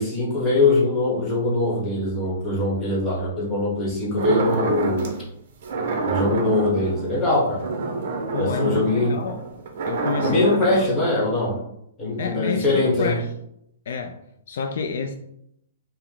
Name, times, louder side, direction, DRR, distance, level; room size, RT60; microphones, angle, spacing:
voice 1, 0.0-5.1 6.0-7.7 8.4-9.2 10.2-11.6 12.0-13.2, left 2 dB, 15° left, -4 dB, 1.2 m, -22 dB
sound 1, 4.2-5.2 5.6-10.9, right 3 dB, 50° right, 0.8 m, -27 dB
voice 2, 8.3-9.4 9.9-10.8 12.2-13.3 13.9-14.2 14.5-15.1, left 5 dB, 60° left, 5 dB, 0.4 m, -28 dB
4.7 x 2.1 x 3.7 m, 0.76 s
hypercardioid pair, 165°, 0 cm